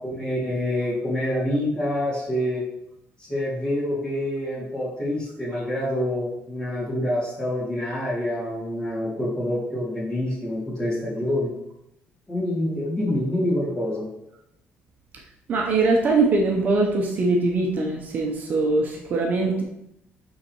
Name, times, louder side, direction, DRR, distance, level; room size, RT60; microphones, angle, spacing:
voice 1, 0.0-2.6 3.2-11.5 12.3-14.1, left 1 dB, 20° left, -6 dB, 2.6 m, -26 dB
voice 2, 15.5-19.6, right 3 dB, 40° right, 0 dB, 0.8 m, -22 dB
9.6 x 3.9 x 3.1 m, 0.82 s
cardioid pair, 160°, 5 cm